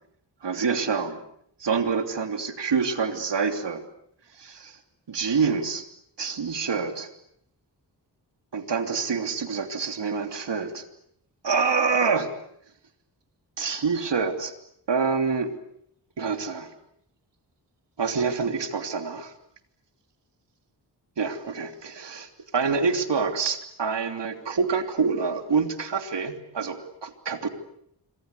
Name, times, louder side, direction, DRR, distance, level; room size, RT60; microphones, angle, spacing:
voice 1, 0.4-1.2 1.6-3.8 4.3-4.8 5.1-5.8 6.2-7.1 8.5-10.8 11.4-12.3 13.6-14.5 14.9-15.5 16.2-16.7 18.0-19.3 21.2-27.5, right 5 dB, 80° right, 7 dB, 3.3 m, -26 dB
26.5 x 25.0 x 8.3 m, 0.71 s
cardioid pair, 65°, 42 cm